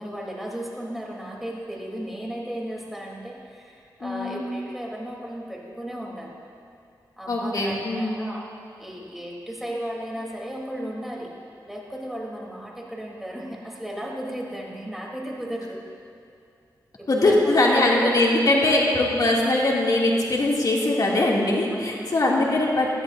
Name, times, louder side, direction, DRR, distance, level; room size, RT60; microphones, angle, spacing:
voice 1, 0.0-6.4 7.2-8.4 8.8-11.3 11.6-15.9 17.0-17.4 17.6-18.4 21.7-22.1, equal, 5° right, -3 dB, 3.4 m, -35 dB
voice 2, 4.0-4.4 7.3-8.2 17.1-22.9, left 2 dB, 55° left, -3 dB, 2.6 m, -21 dB
19.0 x 13.0 x 2.7 m, 2.5 s
cardioid pair, 55°, 8 cm